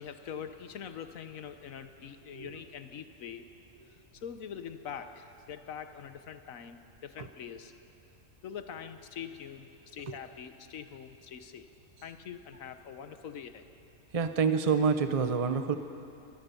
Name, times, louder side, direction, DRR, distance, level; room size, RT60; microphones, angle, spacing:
voice 1, 0.0-3.5 3.9-7.7 8.4-11.7 12.0-13.6, left 8 dB, 85° left, 9 dB, 1.3 m, -44 dB
voice 2, 14.1-15.8, right 5 dB, 30° right, 8 dB, 0.8 m, -27 dB
24.0 x 19.5 x 6.9 m, 2.7 s
omnidirectional pair, 1.4 m